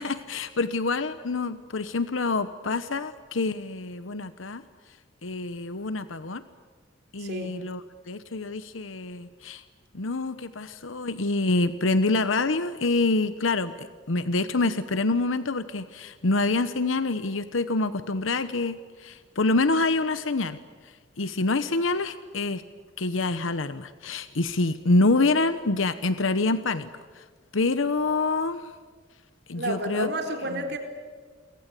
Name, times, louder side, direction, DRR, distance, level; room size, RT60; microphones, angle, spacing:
voice 1, 0.0-4.6 5.2-6.4 7.1-7.8 8.1-9.6 9.9-20.6 21.2-22.6 23.0-26.9 27.1-27.2 27.5-28.7 29.5-30.1 30.5-30.6, left 3 dB, 90° left, 12 dB, 1.0 m, -26 dB
voice 2, 7.2-7.6 29.6-30.8, right 2 dB, 60° right, 5 dB, 4.2 m, -30 dB
29.5 x 24.0 x 8.4 m, 1.5 s
head